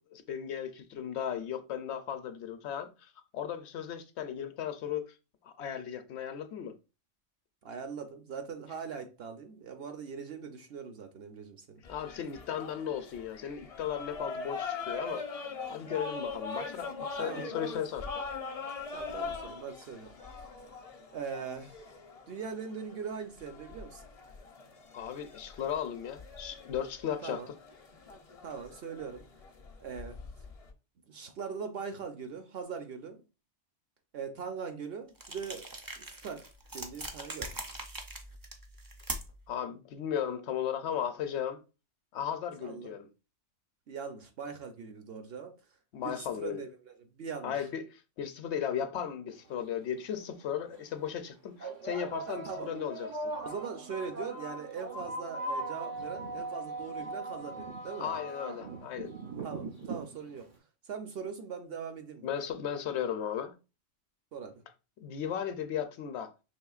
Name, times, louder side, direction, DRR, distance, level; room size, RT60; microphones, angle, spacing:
voice 1, 0.1-5.1 5.4-6.7 11.9-18.1 24.9-27.4 39.5-41.6 42.1-43.1 45.9-46.6 47.4-53.3 58.0-59.1 62.2-63.5 65.0-66.3, left 9 dB, 70° left, 0.8 m, -36 dB
voice 2, 7.6-11.8 17.2-17.7 18.6-20.1 21.1-21.8 22.3-24.0 27.2-27.5 28.4-29.3 29.8-30.2 31.1-33.2 34.1-35.6 36.0-36.5 36.7-37.5 42.6-42.9 43.9-45.5 46.0-47.5 52.3-52.7 53.4-58.2 59.4-60.5 60.9-62.3 64.3-64.6, right 6 dB, 60° right, 0.8 m, -41 dB
sound 1, 11.8-30.7, left 4 dB, 45° left, 0.5 m, -42 dB
sound 2, 35.2-39.5, right 1 dB, 30° right, 0.4 m, -41 dB
sound 3, 49.5-49.6 50.5-50.7 51.6-60.5, right 2 dB, 85° right, 1.6 m, -39 dB
5.5 x 3.2 x 2.3 m
omnidirectional pair, 1.2 m